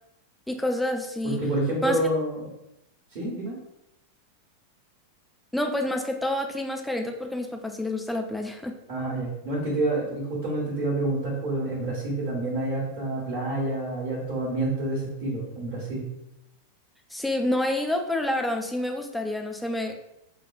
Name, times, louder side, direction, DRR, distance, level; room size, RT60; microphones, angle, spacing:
voice 1, 0.5-1.4 1.8-2.0 5.5-8.8 17.1-19.9, left 1 dB, 5° left, 3 dB, 0.5 m, -28 dB
voice 2, 1.2-2.5 3.1-3.6 8.9-16.0, right 2 dB, 45° right, -6 dB, 1.3 m, -28 dB
6.0 x 2.4 x 2.4 m, 0.86 s
figure-of-eight pair, 90°, 0 cm